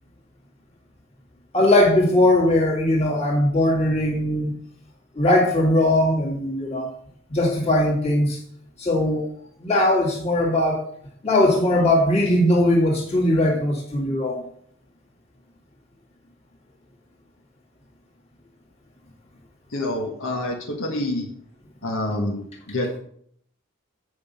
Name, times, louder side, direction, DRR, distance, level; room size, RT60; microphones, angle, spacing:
voice 1, 1.5-4.5 5.2-6.9 7.3-8.4 8.8-9.3 9.6-10.8 11.2-14.4, left 1 dB, 30° left, 2.2 m, -20 dB
voice 2, 19.7-21.3 21.8-23.0, left 1 dB, 75° left, 1.4 m, -27 dB
8.0 x 5.4 x 5.4 m
head